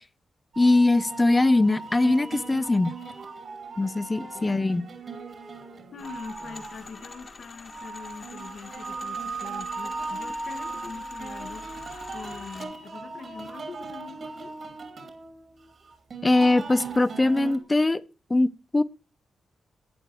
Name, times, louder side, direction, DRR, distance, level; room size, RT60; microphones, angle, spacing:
sound 1, 0.5-17.6, right 3 dB, 55° right, 2.8 m, -38 dB
voice 1, 0.6-2.9 3.8-4.9 16.2-18.0 18.3-18.8, left 2 dB, 20° left, 0.7 m, -21 dB
voice 2, 4.3-4.8 5.9-11.8 12.1-14.5, left 5 dB, 60° left, 1.6 m, -43 dB
sound 2, 6.0-12.7, left 4 dB, 45° left, 2.1 m, -46 dB
12.0 x 8.7 x 4.5 m
cardioid pair, 85°, 0 cm